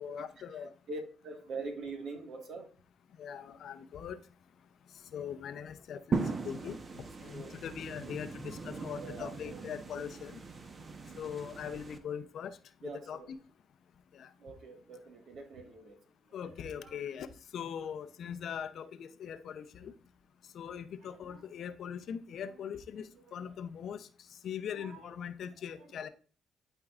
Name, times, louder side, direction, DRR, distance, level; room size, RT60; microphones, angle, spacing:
voice 1, 0.0-0.7 3.1-4.2 4.8-10.4 11.1-13.2 14.1-14.3 16.3-19.9 20.4-26.1, left 8 dB, 70° left, 0.6 m, -41 dB
voice 2, 0.5-2.7 7.3-7.6 8.9-9.6 12.8-13.3 14.4-16.0 16.4-17.0 17.6-17.7 21.0-21.4 22.5-22.7 23.0-23.5 24.7-25.3 25.8-26.1, right 3 dB, 70° right, 1.7 m, -45 dB
sound 1, 6.1-12.0, right 4 dB, 40° right, 1.0 m, -39 dB
12.5 x 4.5 x 2.5 m
cardioid pair, 85°, 0 cm